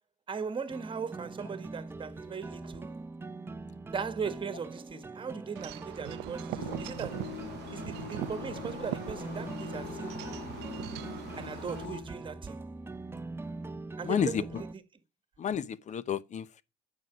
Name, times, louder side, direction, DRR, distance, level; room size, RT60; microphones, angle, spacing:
voice 1, 0.3-2.9 3.9-7.3 7.7-10.2 11.3-12.6 14.0-15.0, right 6 dB, 30° right, 1.5 m, -38 dB
sound 1, 0.7-14.7, right 3 dB, 15° right, 0.6 m, -43 dB
Wind chime / Wind, 5.6-11.9, right 18 dB, 90° right, 0.5 m, -41 dB
sound 2, 6.6-12.0, left 9 dB, 80° left, 4.7 m, -43 dB
voice 2, 14.0-14.4 15.4-16.6, left 8 dB, 45° left, 0.9 m, -31 dB
9.4 x 6.4 x 8.3 m
cardioid pair, 110°, 17 cm